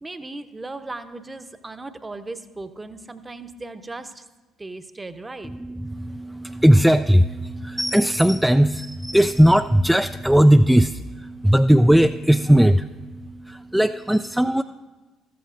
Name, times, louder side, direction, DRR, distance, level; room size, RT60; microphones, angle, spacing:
voice 1, 0.0-4.3 4.6-5.5, right 2 dB, 20° right, 10 dB, 0.8 m, -37 dB
voice 2, 5.4-14.6, equal, 5° right, 8 dB, 0.3 m, -18 dB
14.0 x 13.5 x 2.6 m, 1.2 s
hypercardioid pair, 50°, 0 cm